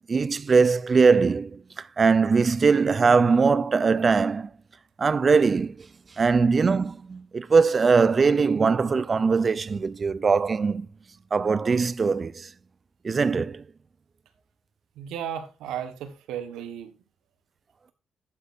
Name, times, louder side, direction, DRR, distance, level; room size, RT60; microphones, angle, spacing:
voice 1, 0.1-4.5 5.0-5.9 6.2-10.9 11.3-12.5 13.0-13.6, right 5 dB, 35° right, 0.5 m, -21 dB
voice 2, 15.0-16.9, right 9 dB, 90° right, 1.5 m, -34 dB
11.5 x 9.4 x 2.7 m
cardioid pair, 90°, 0 cm